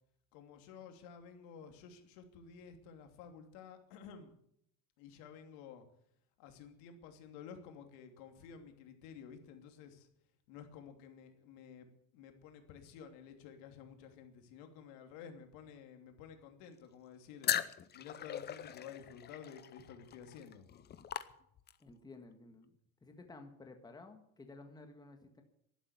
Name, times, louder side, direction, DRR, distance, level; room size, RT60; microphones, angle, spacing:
voice 1, 0.3-4.3 5.0-5.8 6.4-10.1 10.5-17.5 17.9-20.7, left 7 dB, 85° left, 6 dB, 3.0 m, -52 dB
sound 1, 17.4-21.9, left 9 dB, 25° left, 0.7 m, -39 dB
voice 2, 21.8-22.7 23.0-25.4, left 3 dB, 10° left, 5 dB, 1.6 m, -54 dB
12.0 x 11.5 x 9.5 m, 0.72 s
cardioid pair, 155°, 39 cm